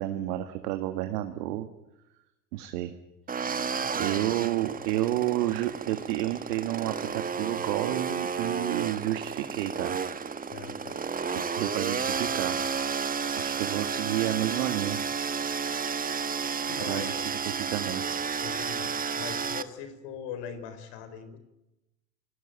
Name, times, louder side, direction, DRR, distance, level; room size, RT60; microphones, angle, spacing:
voice 1, 0.0-1.7 2.5-2.9 4.0-10.0 11.6-12.6 13.4-15.0 16.9-18.0, right 14 dB, 65° right, 7 dB, 1.9 m, -30 dB
sound 1, 3.3-19.6, right 6 dB, 15° right, 1.3 m, -32 dB
voice 2, 3.8-4.2 10.5-11.1 16.7-17.1 18.4-21.4, left 7 dB, 55° left, 12 dB, 4.2 m, -41 dB
28.0 x 18.5 x 9.1 m, 0.95 s
hypercardioid pair, 90°, 49 cm